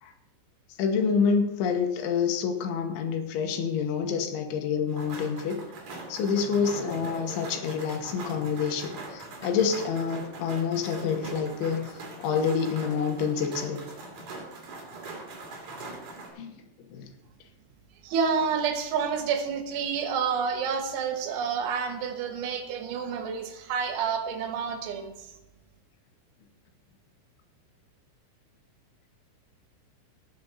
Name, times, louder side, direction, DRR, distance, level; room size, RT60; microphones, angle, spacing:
voice 1, 0.8-5.6 6.1-13.8 16.4-16.5 16.9-17.1, left 6 dB, 75° left, 5 dB, 3.4 m, -27 dB
sound 1, 4.9-16.3, right 2 dB, 50° right, 3.7 m, -41 dB
voice 2, 18.0-25.3, right 6 dB, 75° right, 5 dB, 3.6 m, -29 dB
18.5 x 7.6 x 4.1 m, 0.94 s
omnidirectional pair, 5.6 m